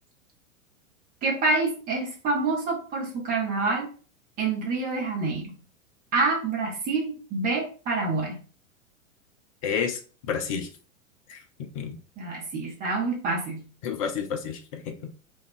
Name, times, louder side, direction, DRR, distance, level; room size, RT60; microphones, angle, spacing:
voice 1, 1.2-3.9 4.4-5.5 6.1-8.4 12.2-13.6, right 3 dB, 20° right, 0 dB, 0.9 m, -27 dB
voice 2, 9.6-10.0 10.3-10.7 11.3-12.0 13.8-15.1, left 7 dB, 25° left, 5 dB, 0.4 m, -30 dB
2.4 x 2.2 x 3.7 m, 0.38 s
figure-of-eight pair, 95°, 41 cm